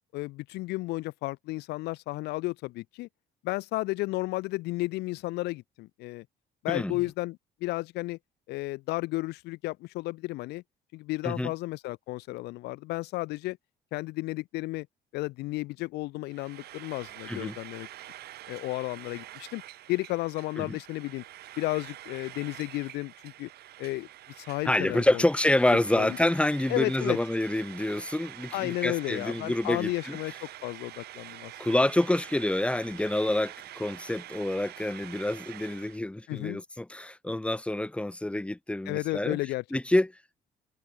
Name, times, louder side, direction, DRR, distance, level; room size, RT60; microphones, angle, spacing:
voice 1, 0.1-3.1 3.4-6.2 6.6-8.2 8.5-10.6 10.9-13.6 13.9-14.9 15.1-17.9 18.5-19.6 19.9-21.2 21.6-23.5 23.8-24.1 24.4-25.2 26.0-26.1 26.7-27.2 28.5-31.5 36.3-36.6 38.9-39.6, left 20 dB, 80° left, 0.5 m, -33 dB
Frying (food), 16.3-36.0, right 14 dB, 70° right, 5.1 m, -46 dB
voice 2, 24.6-30.2 31.6-39.4 39.7-40.1, left 1 dB, 5° left, 1.7 m, -27 dB
cardioid pair, 110°, 17 cm